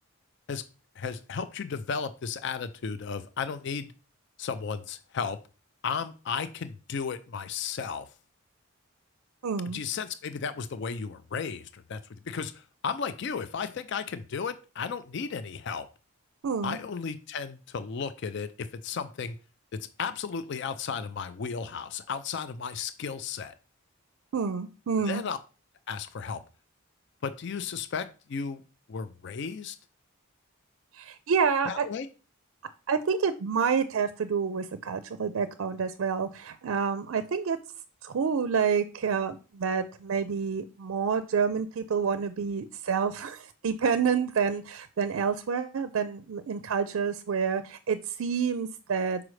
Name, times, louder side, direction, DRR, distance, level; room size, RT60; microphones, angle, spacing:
voice 1, 1.0-3.9 4.4-5.4 5.8-8.0 9.7-15.9 16.6-19.4 19.7-23.5 25.1-25.4 25.9-26.4 27.2-28.6 28.9-29.8 31.7-32.1, left 6 dB, 55° left, 12 dB, 0.4 m, -34 dB
voice 2, 9.4-9.8 16.4-16.8 24.3-25.2 30.9-31.9 32.9-37.6 38.0-49.2, right 6 dB, 70° right, 11 dB, 0.4 m, -28 dB
6.2 x 4.8 x 3.2 m, 0.34 s
head